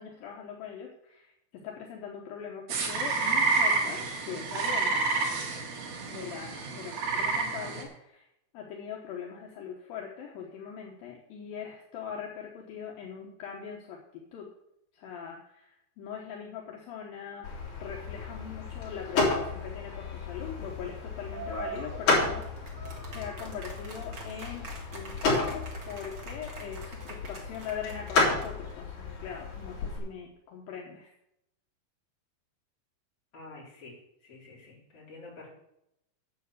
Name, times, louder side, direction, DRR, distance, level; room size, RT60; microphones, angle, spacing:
voice 1, 0.0-5.0 6.1-8.3 8.5-14.5 14.9-22.8 23.1-31.1, left 7 dB, 75° left, -1 dB, 2.9 m, -41 dB
sound 1, 2.7-7.8, right 3 dB, 90° right, 3.9 m, -29 dB
sound 2, 17.4-30.0, left 3 dB, 55° left, 4.2 m, -32 dB
sound 3, 21.3-28.7, right 4 dB, 40° right, 1.8 m, -44 dB
voice 2, 33.3-33.9 34.2-35.5, left 3 dB, 40° left, -5 dB, 4.7 m, -48 dB
9.3 x 7.8 x 6.7 m, 0.80 s
omnidirectional pair, 4.3 m